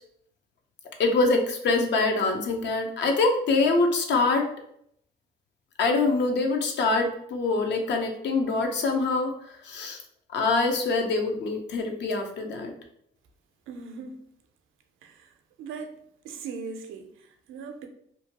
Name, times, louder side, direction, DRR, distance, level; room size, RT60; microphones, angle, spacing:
voice 1, 1.0-4.5 5.8-10.0 10.3-12.7, left 3 dB, 65° left, 0.6 m, -24 dB
voice 2, 13.7-14.2 15.0-15.9 16.2-17.9, right 5 dB, 85° right, 0.5 m, -39 dB
2.7 x 2.2 x 2.8 m
cardioid pair, 90°, 20 cm